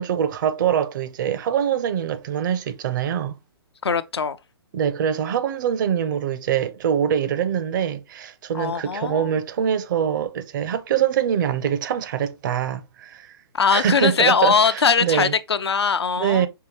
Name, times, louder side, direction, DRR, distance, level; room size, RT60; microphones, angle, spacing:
voice 1, 0.0-3.4 4.7-13.3 13.7-15.3 16.2-16.5, right 9 dB, 50° right, 0.6 m, -24 dB
voice 2, 3.8-4.4 8.5-9.3 13.5-16.5, left 6 dB, 85° left, 0.5 m, -21 dB
5.6 x 2.2 x 3.0 m
figure-of-eight pair, 125°, 13 cm